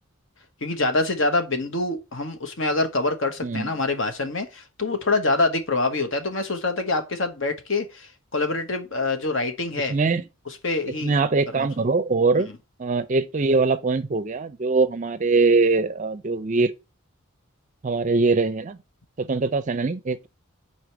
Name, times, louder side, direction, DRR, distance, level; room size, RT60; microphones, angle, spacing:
voice 1, 0.6-10.0 10.5-11.1 11.5-11.7, left 2 dB, 60° left, 1.2 m, -25 dB
voice 2, 9.9-10.2 11.0-12.5 12.8-16.7 17.8-18.8 19.2-20.3, right 3 dB, 35° right, 0.4 m, -22 dB
5.0 x 4.4 x 5.8 m
head